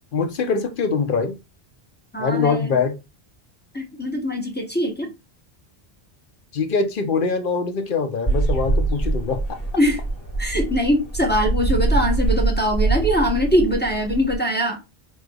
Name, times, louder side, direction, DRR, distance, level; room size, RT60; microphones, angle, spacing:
voice 1, 0.1-1.4 2.2-2.9 6.5-9.6, left 5 dB, 55° left, 0.9 m, -23 dB
voice 2, 2.1-2.8 3.7-5.1 9.8-10.0 10.4-14.8, equal, 10° left, 0.8 m, -22 dB
sound 1, 8.3-14.4, right 3 dB, 25° left, 1.7 m, -24 dB
4.9 x 3.3 x 2.2 m
omnidirectional pair, 1.1 m